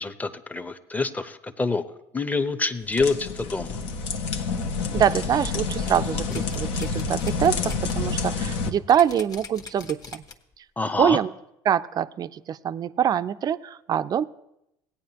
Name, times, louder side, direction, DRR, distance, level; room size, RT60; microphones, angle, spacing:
voice 1, 0.0-1.8 2.1-3.8 10.8-11.2, left 3 dB, 15° left, 9 dB, 0.8 m, -26 dB
sound 1, 2.8-8.7, left 4 dB, 70° left, 1.0 m, -28 dB
voice 2, 4.9-10.2 11.0-11.3 11.7-14.2, right 9 dB, 40° right, 14 dB, 0.4 m, -24 dB
sound 2, 5.9-7.9 8.3-8.4 8.9-10.5 11.0-11.1, left 4 dB, 35° left, 1.2 m, -41 dB
17.0 x 9.0 x 2.9 m, 0.83 s
supercardioid pair, 80°, 10 cm